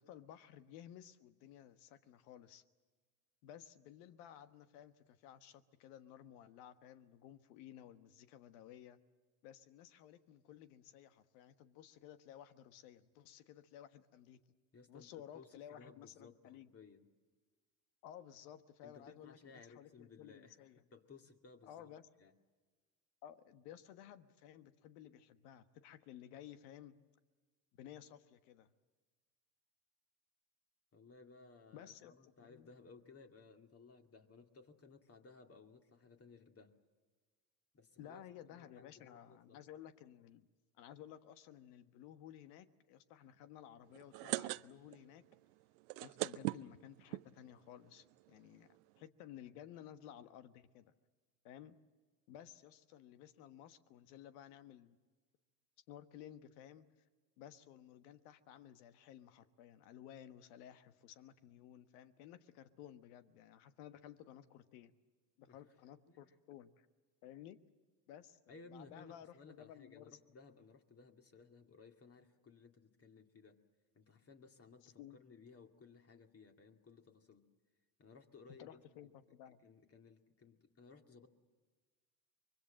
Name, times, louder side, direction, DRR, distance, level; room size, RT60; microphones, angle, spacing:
voice 1, 0.0-2.6 3.4-9.0 9.4-14.4 14.9-16.7 18.0-20.8 21.6-22.0 23.2-27.0 27.7-28.7 31.7-32.7 38.0-40.5 40.8-45.2 46.0-50.9 51.4-51.8 52.3-55.0 55.9-56.9 57.4-64.9 65.4-66.9 67.2-67.6 68.1-70.2 74.8-75.2 78.6-79.6, left 10 dB, 70° left, 11 dB, 1.4 m, -55 dB
voice 2, 14.7-17.1 18.8-20.6 20.9-22.3 30.9-36.7 37.7-38.2 38.5-39.6 65.5-65.6 66.1-66.2 68.5-73.6 73.9-77.5 78.0-78.8 79.6-81.3, left 4 dB, 30° left, 5 dB, 2.3 m, -60 dB
sound 1, 43.9-45.1 45.3-45.4 45.8-47.2 47.9-48.0 48.3-48.4 48.5-48.8, right 22 dB, 75° right, 0.7 m, -39 dB
24.5 x 22.5 x 7.6 m, 1.4 s
hypercardioid pair, 90°, 47 cm